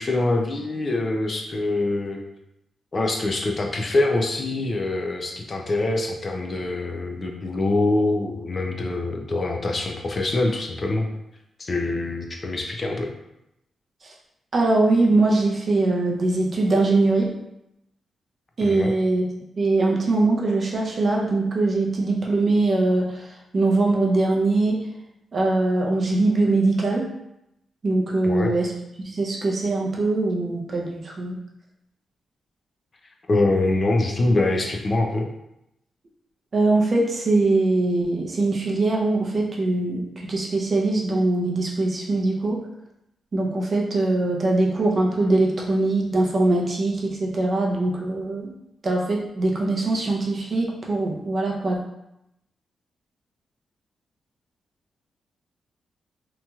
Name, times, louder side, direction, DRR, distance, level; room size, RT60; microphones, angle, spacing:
voice 1, 0.0-2.2 2.9-11.1 11.6-13.1 18.6-18.9 28.2-28.5 33.3-35.3, left 2 dB, 35° left, 2 dB, 0.3 m, -24 dB
voice 2, 14.5-17.3 18.6-19.2 19.6-23.3 23.5-24.8 25.3-27.1 27.8-28.7 29.1-31.4 36.5-42.6 43.3-48.5 48.8-51.8, right 2 dB, 40° right, -2 dB, 0.5 m, -22 dB
2.8 x 2.7 x 2.3 m, 0.84 s
wide cardioid pair, 135°, 0 cm